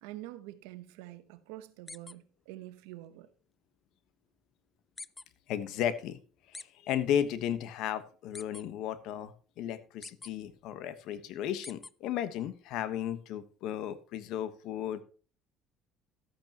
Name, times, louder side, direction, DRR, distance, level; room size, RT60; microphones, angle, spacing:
voice 1, 0.0-3.3, right 15 dB, 85° right, 0.9 m, -46 dB
sound 1, 1.9-2.1 5.0-5.2 6.5-6.6 8.3-8.6 10.0-10.3 11.6-11.9, left 3 dB, 15° left, 0.4 m, -44 dB
voice 2, 5.5-6.2 6.5-15.0, left 10 dB, 70° left, 1.2 m, -34 dB
13.0 x 9.0 x 2.9 m
supercardioid pair, 105°, 0 cm